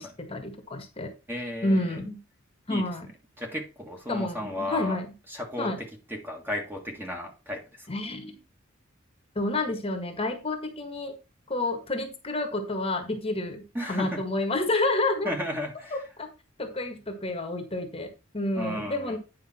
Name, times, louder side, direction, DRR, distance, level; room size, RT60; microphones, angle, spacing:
voice 1, 0.0-1.1 1.6-2.2 2.7-3.1 4.1-5.1 5.6-5.8 7.9-8.4 9.3-11.1 11.5-15.3 16.2-16.3 16.6-19.2, left 2 dB, 30° left, 1.6 m, -29 dB
voice 2, 1.3-2.0 2.7-2.9 3.4-5.0 5.3-7.9 13.7-14.2 15.2-16.0 18.5-19.2, left 1 dB, 10° right, 1.7 m, -34 dB
9.7 x 5.1 x 4.2 m
head